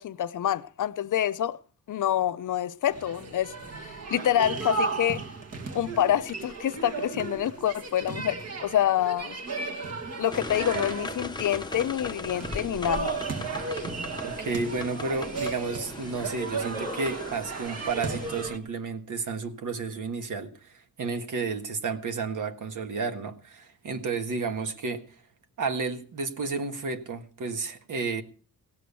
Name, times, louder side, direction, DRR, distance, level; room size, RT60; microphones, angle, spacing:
voice 1, 0.0-1.6 1.9-3.5 3.8-5.2 5.7-9.4 10.2-13.2, left 11 dB, 65° left, 0.7 m, -27 dB
sound 1, 2.9-18.6, right 4 dB, 45° right, 1.9 m, -35 dB
sound 2, 10.3-18.4, left 3 dB, 15° left, 0.8 m, -39 dB
voice 2, 14.2-25.0 25.6-28.2, right 4 dB, 65° right, 1.6 m, -32 dB
17.0 x 7.7 x 6.9 m
wide cardioid pair, 135°, 34 cm